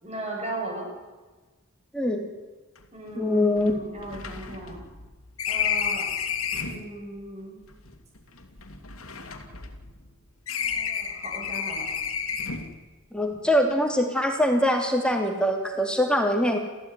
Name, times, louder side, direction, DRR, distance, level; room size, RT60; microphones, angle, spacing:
voice 1, 0.0-0.9 2.9-4.8 5.5-6.1 6.6-7.6 10.5-11.9 13.3-13.4, right 1 dB, 30° right, 0 dB, 7.9 m, -37 dB
voice 2, 1.9-2.3 3.2-3.7 13.1-16.6, left 1 dB, 5° left, 3 dB, 3.0 m, -23 dB
sound 1, 2.8-2.9 3.1-3.2 3.6-6.9 7.7-10.1 10.5-12.8, left 7 dB, 65° left, 2.6 m, -31 dB
29.0 x 15.0 x 9.8 m, 1.3 s
head